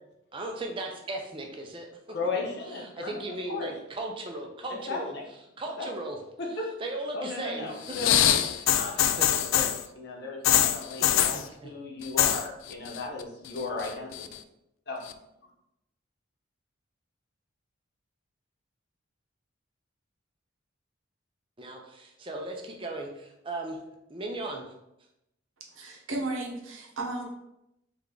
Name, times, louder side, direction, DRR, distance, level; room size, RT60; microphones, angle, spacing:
voice 1, 0.3-1.9 2.7-5.2 5.6-6.2 6.8-8.0 8.5-8.8 9.2-9.3 11.0-11.7 21.6-23.8 24.1-24.7, right 2 dB, 25° right, 2 dB, 0.5 m, -37 dB
voice 2, 2.1-3.7 4.9-5.2 5.8-5.9 6.4-6.7 7.1-8.3 8.7-11.4 11.6-14.3 14.9-15.0, left 3 dB, 55° left, -1 dB, 0.9 m, -36 dB
sound 1, 7.9-9.8 10.4-11.4 12.0-12.4 12.7-13.2 13.6-14.3 15.1-15.2, left 11 dB, 70° left, 0.3 m, -23 dB
voice 3, 25.7-27.3, right 2 dB, 75° right, -1 dB, 1.0 m, -34 dB
3.4 x 3.4 x 3.8 m, 0.85 s
head